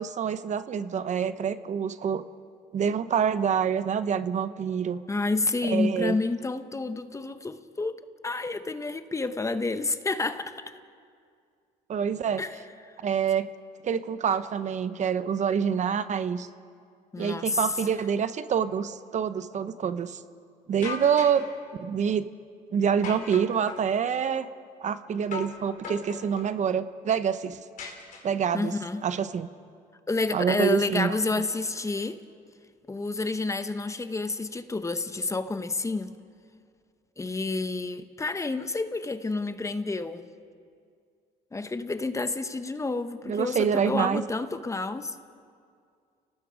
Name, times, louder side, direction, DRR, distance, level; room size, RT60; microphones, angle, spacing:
voice 1, 0.0-2.2 2.7-5.0 5.6-6.1 11.9-12.4 13.0-13.5 13.8-16.5 17.2-20.2 20.7-21.5 21.8-22.3 22.7-24.5 24.8-27.6 28.2-28.8 29.0-29.5 30.3-31.2 43.3-44.2, right 7 dB, 45° right, 0.9 m, -26 dB
voice 2, 5.1-10.8 12.4-12.5 17.1-17.6 28.5-29.0 30.1-32.2 32.9-36.1 37.2-40.3 41.5-45.1, left 3 dB, 20° left, 0.9 m, -29 dB
sound 1, 20.8-21.5 23.0-23.9 25.3-25.6 25.8-26.5 27.8-28.5, left 5 dB, 55° left, 4.5 m, -38 dB
30.0 x 18.0 x 5.1 m
cardioid pair, 100°, 16 cm